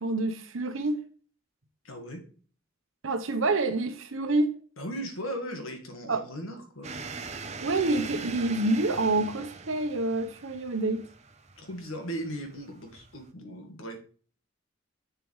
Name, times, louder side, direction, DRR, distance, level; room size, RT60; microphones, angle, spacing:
voice 1, 0.0-1.0 3.0-4.5 6.1-6.3 7.6-11.0, right 2 dB, 70° right, 0.9 m, -27 dB
voice 2, 1.8-2.2 4.8-7.0 11.6-14.0, equal, 75° left, 1.7 m, -37 dB
sound 1, 6.8-13.3, right 4 dB, 35° right, 0.7 m, -42 dB
7.2 x 6.7 x 3.2 m
head